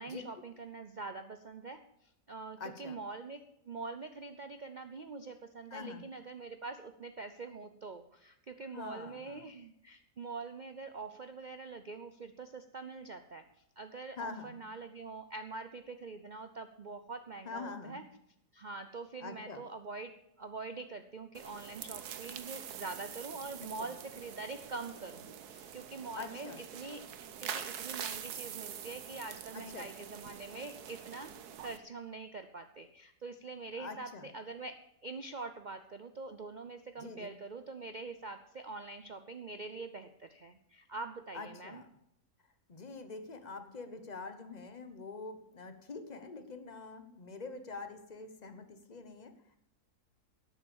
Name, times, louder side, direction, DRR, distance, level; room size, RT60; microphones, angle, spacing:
voice 1, 0.0-13.4 13.8-18.0 18.5-27.0 27.4-31.3 31.6-41.8, right 3 dB, 60° right, 8 dB, 0.4 m, -44 dB
voice 2, 2.6-3.0 5.7-6.0 8.7-9.4 14.2-14.6 17.4-18.0 19.2-19.6 23.6-23.9 26.2-26.6 29.5-29.9 33.8-34.3 37.0-37.3 41.3-41.9 42.7-49.6, left 4 dB, 30° left, 9 dB, 1.0 m, -45 dB
sound 1, 21.3-31.8, right 9 dB, 75° right, 1.4 m, -45 dB
12.5 x 8.6 x 7.0 m, 0.77 s
omnidirectional pair, 1.7 m